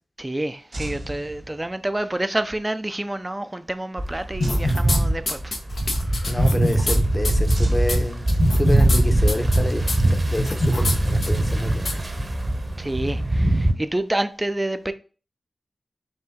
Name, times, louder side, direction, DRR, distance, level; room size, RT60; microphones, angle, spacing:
voice 1, 0.2-5.6 6.1-6.5 12.8-14.9, right 1 dB, 20° right, 0.4 m, -28 dB
sound 1, 0.7-2.0 4.4-5.7 7.5-8.8, right 1 dB, 70° right, 1.3 m, -36 dB
sound 2, 4.0-13.7, right 1 dB, 40° right, 0.9 m, -21 dB
sound 3, 4.4-5.0 5.3-7.0 7.2-7.5 7.9-8.0 8.3-9.0 9.3-9.6 9.9-10.0 10.4-11.0 11.2-11.3 11.9-12.0, left 2 dB, 75° left, 0.8 m, -25 dB
voice 2, 6.3-8.3 8.6-9.9 10.2-12.0, left 1 dB, 20° left, 0.8 m, -28 dB
4.5 x 2.7 x 3.7 m
cardioid pair, 50°, 0 cm